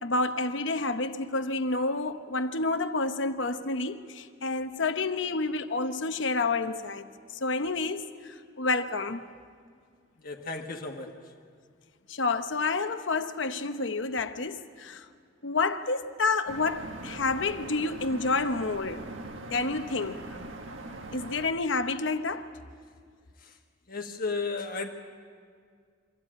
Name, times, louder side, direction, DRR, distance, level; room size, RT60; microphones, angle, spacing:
voice 1, 0.0-7.1 7.4-8.1 8.6-9.2 12.1-15.0 15.4-19.1 19.5-20.2 21.1-22.5, left 3 dB, 70° left, 0.9 m, -29 dB
voice 2, 10.2-11.1 23.4-23.5 23.9-24.9, left 4 dB, 50° left, 1.5 m, -34 dB
sound 1, 16.5-21.5, right 2 dB, 80° right, 1.5 m, -41 dB
24.0 x 15.0 x 8.8 m
head